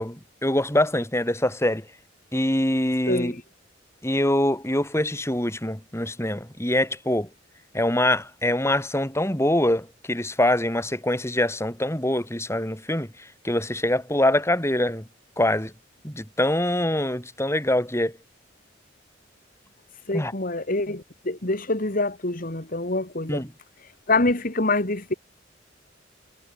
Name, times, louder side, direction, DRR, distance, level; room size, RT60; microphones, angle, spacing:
voice 1, 0.0-1.8 2.3-3.3 4.0-7.3 7.7-13.1 13.4-15.0 15.4-15.7 16.0-18.1 20.1-20.3 23.3-23.5, left 1 dB, 15° left, 5.0 m, -24 dB
voice 2, 3.1-3.4 20.1-23.4 23.8-25.1, left 2 dB, 45° left, 2.5 m, -26 dB
head